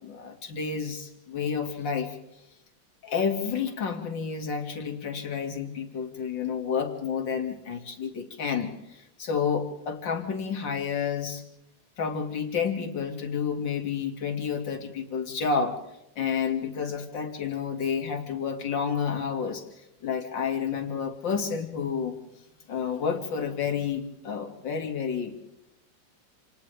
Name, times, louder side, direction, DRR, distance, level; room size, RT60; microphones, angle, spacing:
voice 1, 0.0-2.2 3.0-11.4 12.0-15.8 16.2-19.7 20.0-22.2 22.7-25.5, left 6 dB, 75° left, 3 dB, 3.0 m, -30 dB
29.0 x 28.5 x 3.4 m, 0.86 s
omnidirectional pair, 2.0 m